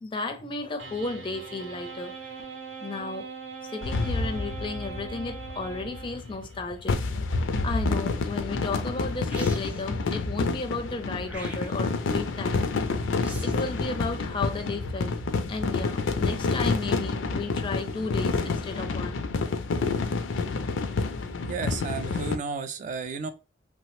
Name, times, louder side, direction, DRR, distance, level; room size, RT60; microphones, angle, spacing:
voice 1, 0.0-2.1 2.8-3.3 3.7-7.0 7.6-12.6 13.4-15.1 15.5-19.2, left 3 dB, 25° left, 0.4 m, -34 dB
sound 1, 0.8-6.6, right 5 dB, 80° right, 0.7 m, -41 dB
sound 2, 3.8-22.4, left 3 dB, 85° left, 0.4 m, -29 dB
sound 3, 9.3-10.0 11.3-12.0 13.2-13.7, equal, 10° right, 0.8 m, -42 dB
voice 2, 21.5-23.3, right 5 dB, 40° right, 0.3 m, -33 dB
3.1 x 2.0 x 3.0 m
head